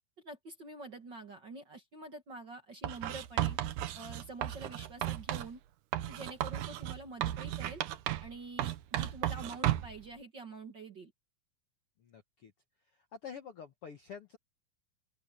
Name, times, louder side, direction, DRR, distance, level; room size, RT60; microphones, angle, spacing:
voice 1, 0.2-3.6 3.9-5.6 6.1-7.8 8.2-11.1, right 3 dB, 40° right, 1.8 m, -47 dB
Writing, 2.8-5.5 5.9-8.3 8.6-10.0, right 13 dB, 70° right, 2.3 m, -35 dB
voice 2, 12.0-12.5 12.9-14.4, left 7 dB, 60° left, 1.6 m, -48 dB
open air
omnidirectional pair, 4.2 m